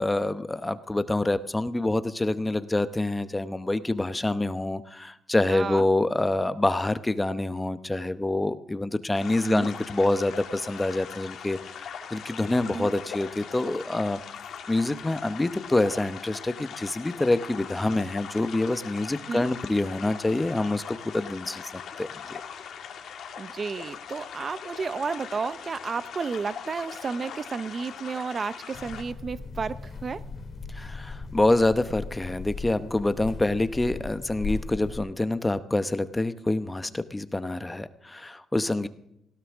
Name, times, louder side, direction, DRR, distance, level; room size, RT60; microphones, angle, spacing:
voice 1, 0.0-14.2 14.7-21.6 22.0-22.4 30.7-38.9, left 2 dB, 15° left, 12 dB, 0.8 m, -26 dB
voice 2, 5.5-5.9 9.4-9.7 12.7-12.9 19.3-19.5 23.4-30.2, right 5 dB, 40° right, 15 dB, 0.6 m, -32 dB
sound 1, 9.1-29.0, left 7 dB, 70° left, 2.1 m, -41 dB
sound 2, 28.7-35.0, left 4 dB, 45° left, 2.3 m, -38 dB
18.5 x 16.5 x 3.6 m, 0.80 s
cardioid pair, 90°, 0 cm